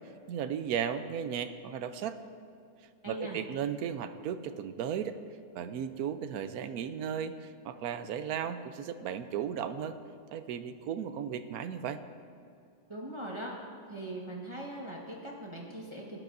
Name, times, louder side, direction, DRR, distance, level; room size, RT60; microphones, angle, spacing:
voice 1, 0.3-2.2 3.1-5.2 5.5-10.0 10.3-12.0, right 8 dB, 80° right, 11 dB, 1.1 m, -35 dB
voice 2, 3.0-3.4 12.9-13.5 13.9-16.2, right 1 dB, 20° right, -3 dB, 1.2 m, -40 dB
17.5 x 11.0 x 2.6 m, 2.4 s
omnidirectional pair, 1.6 m